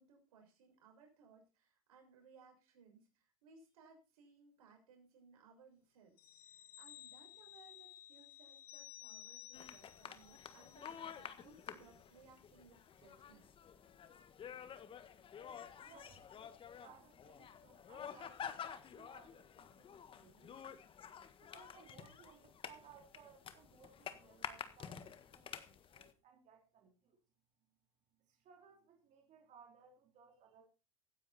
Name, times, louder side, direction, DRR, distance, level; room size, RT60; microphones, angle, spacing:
voice 1, 0.0-6.2 6.4-13.5, right 4 dB, 80° right, 2 dB, 6.3 m, -64 dB
sound 1, 6.2-11.3 11.6-11.8, left 13 dB, 90° left, 1.1 m, -56 dB
sound 2, 9.5-26.1, left 8 dB, 30° left, 1.6 m, -50 dB
voice 2, 15.8-16.2 16.8-19.9 20.2-20.8 21.4-27.2 28.3-30.6, right 7 dB, 40° right, 2 dB, 3.6 m, -63 dB
16.5 x 9.6 x 4.3 m, 0.32 s
hypercardioid pair, 110°, 19 cm